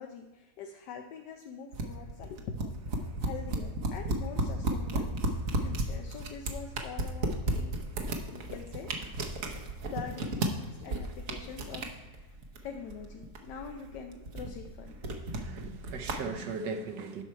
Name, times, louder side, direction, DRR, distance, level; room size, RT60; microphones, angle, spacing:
voice 1, 0.0-7.8 8.3-8.9 9.2-12.3 12.6-15.2, left 6 dB, 70° left, 3 dB, 1.3 m, -44 dB
sound 1, 1.7-16.1, right 2 dB, 55° right, 1.2 m, -34 dB
voice 2, 15.1-17.2, right 4 dB, 70° right, 6 dB, 1.6 m, -38 dB
10.5 x 6.1 x 4.5 m, 1.2 s
omnidirectional pair, 2.0 m